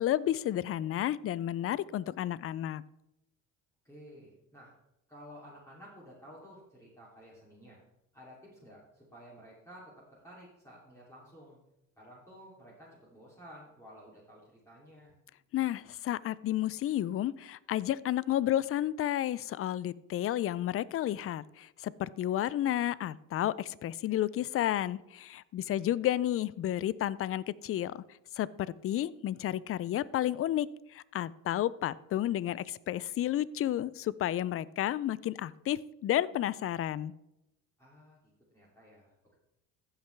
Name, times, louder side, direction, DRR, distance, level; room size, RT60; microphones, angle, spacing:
voice 1, 0.0-2.8 15.5-28.0 28.4-28.5 28.8-37.1, left 12 dB, 35° left, 20 dB, 0.4 m, -31 dB
voice 2, 3.8-4.7 5.1-7.8 8.1-11.6 12.0-15.2 25.6-25.8 37.8-39.3, equal, 5° left, -6 dB, 2.9 m, -53 dB
15.0 x 5.7 x 3.4 m, 0.88 s
supercardioid pair, 70°, 39 cm